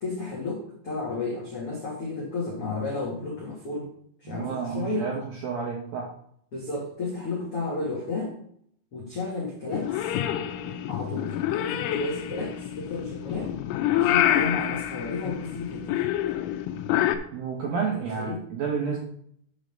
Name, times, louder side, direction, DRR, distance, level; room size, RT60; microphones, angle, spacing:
voice 1, 0.0-3.9 4.2-5.1 6.5-8.3 8.9-10.1 10.6-13.5 13.9-16.1 17.9-18.4, left 3 dB, 70° left, -4 dB, 1.4 m, -32 dB
voice 2, 4.3-6.1 17.3-19.0, right 6 dB, 80° right, -1 dB, 2.1 m, -30 dB
Purr / Meow, 9.7-17.2, left 12 dB, 90° left, 3.4 m, -27 dB
7.4 x 5.1 x 6.6 m, 0.67 s
omnidirectional pair, 5.9 m